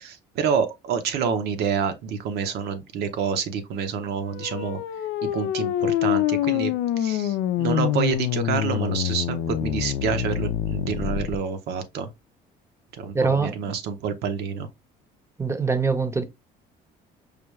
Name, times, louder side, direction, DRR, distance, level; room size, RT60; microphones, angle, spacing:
voice 1, 0.0-4.8 5.3-12.1 12.9-14.7, right 6 dB, 75° right, 0.8 m, -28 dB
sound 1, 4.3-11.4, left 11 dB, 90° left, 0.5 m, -26 dB
voice 2, 13.1-13.7 15.4-16.2, right 4 dB, 15° right, 0.7 m, -23 dB
4.9 x 2.3 x 3.1 m
cardioid pair, 110°, 17 cm